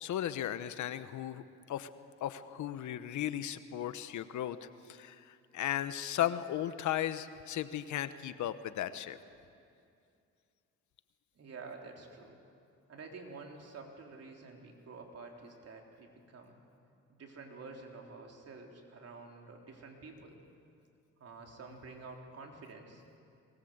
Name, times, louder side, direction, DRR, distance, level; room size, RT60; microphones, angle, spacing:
voice 1, 0.0-1.4 1.7-1.9 2.2-9.2, left 11 dB, 75° left, 12 dB, 1.1 m, -36 dB
voice 2, 11.3-12.4 12.9-16.6 17.1-20.4 21.2-23.0, right 4 dB, 55° right, 2 dB, 3.7 m, -49 dB
23.0 x 20.0 x 8.0 m, 2.4 s
cardioid pair, 90°, 30 cm